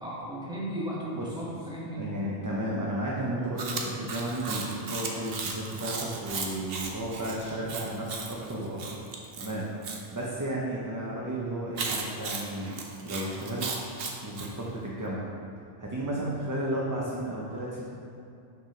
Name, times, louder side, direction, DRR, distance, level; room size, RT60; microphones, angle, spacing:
voice 1, 0.0-2.2, right 1 dB, 5° right, -7 dB, 1.4 m, -35 dB
voice 2, 1.1-1.5 2.0-9.0 9.3-9.7 10.1-12.8 13.0-13.7 14.2-15.3 15.8-17.8, right 1 dB, 20° right, -5 dB, 0.6 m, -33 dB
Chewing mastication, 3.6-10.0 11.7-14.5, right 4 dB, 70° right, 1.0 m, -36 dB
6.3 x 4.8 x 5.0 m, 2.6 s
omnidirectional pair, 1.0 m